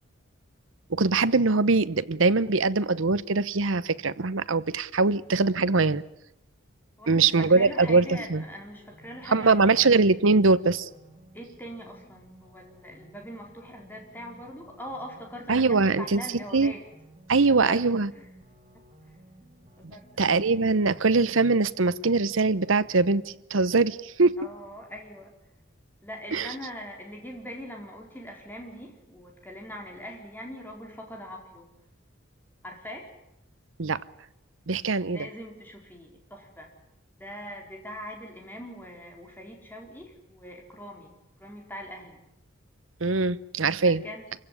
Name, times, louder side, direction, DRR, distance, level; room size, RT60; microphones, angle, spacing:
voice 1, 0.9-6.0 7.1-8.4 9.3-10.9 15.5-16.2 16.5-16.7 17.3-18.1 20.2-24.3 26.3-26.5 33.8-34.0 34.7-35.3 43.0-44.0, right 3 dB, 75° right, 0.9 m, -22 dB
voice 2, 7.0-9.9 11.3-16.8 17.6-17.8 18.1-18.3 19.8-20.3 24.4-25.3 26.0-31.7 32.6-33.1 35.1-36.7 37.2-41.1 41.4-42.2 43.8-44.3, equal, 10° left, 4.5 m, -42 dB
sound 1, 7.2-23.2, right 1 dB, 30° right, 3.9 m, -55 dB
25.5 x 16.0 x 9.8 m
head